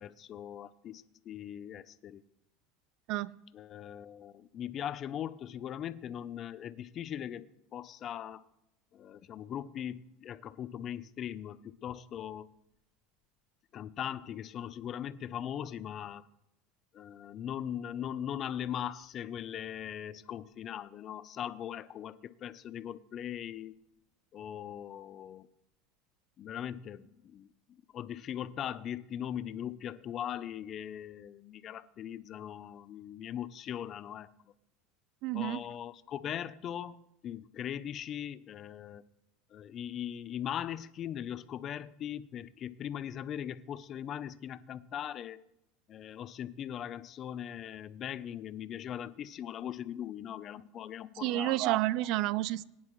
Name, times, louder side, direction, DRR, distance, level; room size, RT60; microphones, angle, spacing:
voice 1, 0.0-2.2 3.5-7.5 7.7-8.4 8.9-12.5 13.7-16.3 16.9-23.8 24.3-25.5 26.4-27.5 27.9-34.3 35.3-39.0 39.5-45.4 45.9-51.8, left 10 dB, 40° left, 0.6 m, -40 dB
voice 2, 35.2-35.6 51.2-52.6, right 16 dB, 60° right, 0.5 m, -30 dB
20.5 x 10.0 x 3.2 m
supercardioid pair, 115°, 0 cm